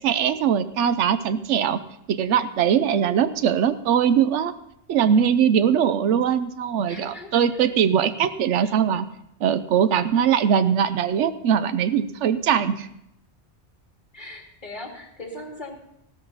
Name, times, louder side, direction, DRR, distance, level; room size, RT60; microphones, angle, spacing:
voice 1, 0.0-1.8 2.1-4.5 4.9-9.1 9.4-12.9, right 8 dB, 85° right, 12 dB, 1.0 m, -21 dB
voice 2, 6.9-7.4 8.6-8.8 14.1-15.8, left 1 dB, 45° left, 1 dB, 2.5 m, -39 dB
15.5 x 13.5 x 4.0 m, 0.79 s
omnidirectional pair, 1.2 m